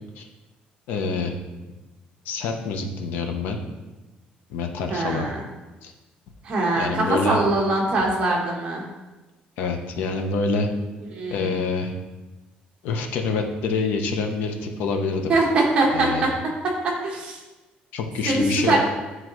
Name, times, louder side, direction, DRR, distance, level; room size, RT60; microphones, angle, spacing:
voice 1, 0.9-1.3 2.3-3.6 4.5-5.3 5.8-5.9 6.8-7.4 9.6-10.7 11.3-11.9 12.8-15.3 15.9-16.2 17.9-18.8, left 4 dB, 85° left, 4 dB, 0.8 m, -26 dB
voice 2, 4.9-5.4 6.4-8.8 11.1-11.5 15.3-16.3 16.6-17.4 18.2-18.8, right 2 dB, 35° right, -2 dB, 1.2 m, -22 dB
9.2 x 3.8 x 3.1 m, 1.1 s
cardioid pair, 170°, 3 cm